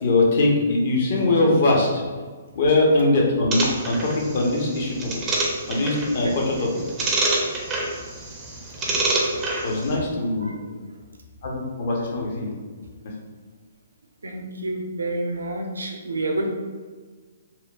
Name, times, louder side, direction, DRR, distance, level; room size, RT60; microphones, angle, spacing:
voice 1, 0.0-2.0 2.5-5.0 5.7-6.8 8.9-9.0 9.6-10.6 11.4-12.5, left 2 dB, 50° left, -2 dB, 0.7 m, -21 dB
voice 2, 2.8-3.1 6.0-6.7 10.4-10.7 14.2-16.5, right 2 dB, 85° right, 2 dB, 0.4 m, -30 dB
sound 1, 3.5-10.0, right 2 dB, 20° right, 0.5 m, -27 dB
2.9 x 2.1 x 2.3 m, 1.5 s
hypercardioid pair, 135°, 0 cm